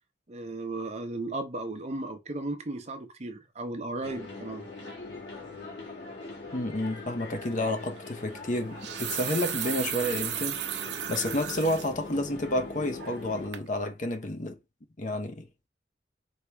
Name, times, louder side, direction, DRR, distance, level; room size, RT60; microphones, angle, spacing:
voice 1, 0.3-4.6, right 2 dB, 40° right, 0.8 m, -35 dB
sound 1, 4.0-13.5, left 3 dB, 90° left, 2.0 m, -42 dB
voice 2, 6.5-10.6 11.1-14.6 15.0-15.7, left 1 dB, 45° left, 0.8 m, -30 dB
sound 2, 7.4-7.6 8.6-11.9 12.4-12.5 13.0-13.3 13.5-13.7, right 10 dB, 75° right, 0.6 m, -34 dB
4.7 x 3.0 x 3.3 m
head